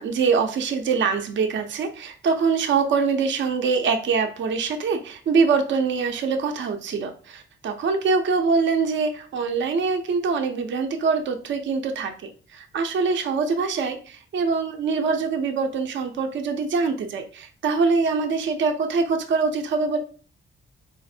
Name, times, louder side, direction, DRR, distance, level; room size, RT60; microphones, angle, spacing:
voice 1, 0.0-12.1 12.5-20.0, right 5 dB, 60° right, 5 dB, 0.5 m, -24 dB
4.0 x 2.5 x 2.6 m, 0.41 s
cardioid pair, 90°, 21 cm